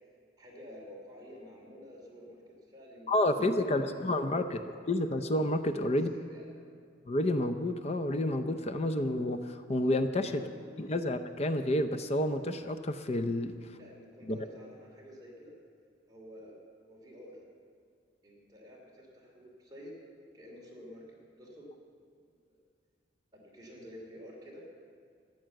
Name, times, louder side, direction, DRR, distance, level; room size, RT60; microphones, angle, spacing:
voice 1, 0.4-4.1 4.5-4.7 5.9-6.5 10.3-10.8 13.7-15.6 16.1-17.4 18.2-21.8 22.2-22.6 23.3-24.7, equal, 20° right, -3 dB, 2.8 m, -51 dB
voice 2, 3.1-4.6 4.9-6.1 7.1-10.5 10.8-13.7 14.2-14.4, left 1 dB, 35° left, 9 dB, 0.5 m, -30 dB
14.0 x 10.5 x 7.7 m, 2.2 s
head